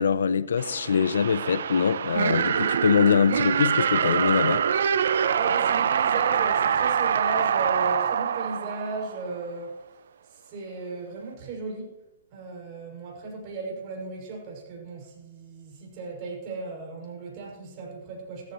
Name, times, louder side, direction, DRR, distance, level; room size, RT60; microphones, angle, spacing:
voice 1, 0.0-4.6, left 6 dB, 80° left, 0.6 m, -23 dB
sound 1, 0.6-9.4, right 8 dB, 70° right, 0.7 m, -25 dB
voice 2, 5.3-9.7 10.3-11.9 12.3-18.5, right 3 dB, 35° right, 6.4 m, -36 dB
18.0 x 14.5 x 3.1 m
hypercardioid pair, 145°, 0 cm